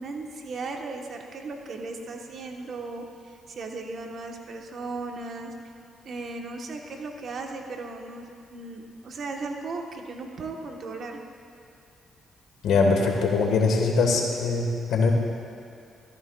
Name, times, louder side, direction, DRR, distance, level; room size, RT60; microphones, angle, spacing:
voice 1, 0.0-5.5 6.0-11.2, right 3 dB, 55° right, 2 dB, 1.1 m, -36 dB
voice 2, 12.6-15.1, left 4 dB, 80° left, 2 dB, 1.4 m, -22 dB
14.0 x 14.0 x 2.3 m, 2.4 s
cardioid pair, 90°, 0 cm